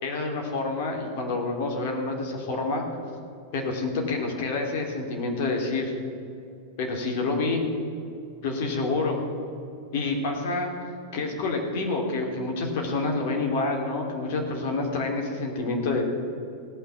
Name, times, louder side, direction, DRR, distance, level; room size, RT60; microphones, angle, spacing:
voice 1, 0.0-2.8 3.5-5.9 6.8-7.6 8.4-9.2 9.9-10.7 11.1-16.0, left 3 dB, 50° left, 1 dB, 2.6 m, -28 dB
17.0 x 6.0 x 9.3 m, 2.6 s
figure-of-eight pair, 90°, 0 cm